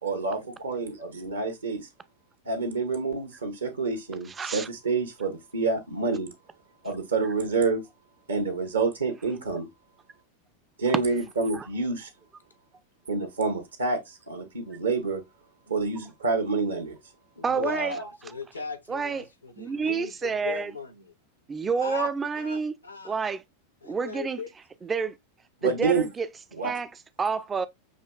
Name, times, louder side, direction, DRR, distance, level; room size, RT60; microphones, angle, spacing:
voice 1, 0.0-1.9 2.5-6.3 6.8-7.8 8.3-9.7 10.8-12.1 13.1-15.2 15.7-17.0 25.6-26.1 26.6-26.7, right 4 dB, 75° right, 1.0 m, -28 dB
voice 2, 4.3-4.7 11.5-11.7 17.4-18.0 18.9-19.3 19.6-20.7 21.5-22.7 23.0-23.4 23.8-24.4 24.8-25.2 25.6-26.3 26.6-26.9 27.2-27.7, right 5 dB, 20° right, 0.4 m, -29 dB
voice 3, 17.4-21.1 21.8-23.2 23.8-24.5, left 4 dB, 80° left, 0.9 m, -38 dB
6.4 x 2.9 x 2.2 m
figure-of-eight pair, 90°, 0 cm